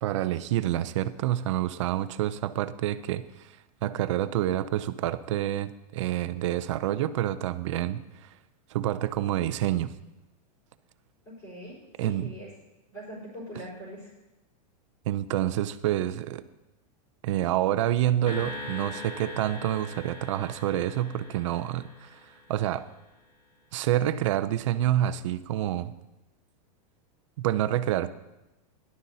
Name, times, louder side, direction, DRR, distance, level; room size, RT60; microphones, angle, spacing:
voice 1, 0.0-3.5 3.8-8.3 8.7-9.9 12.0-12.3 15.1-16.4 17.2-22.2 22.5-22.9 23.7-25.9 27.4-28.1, right 12 dB, 50° right, 13 dB, 0.5 m, -28 dB
voice 2, 11.2-12.5 12.9-14.1, equal, 20° left, -9 dB, 4.3 m, -42 dB
sound 1, 18.3-22.7, left 2 dB, 85° left, 3.3 m, -41 dB
17.5 x 11.5 x 2.7 m, 0.96 s
supercardioid pair, 175°, 21 cm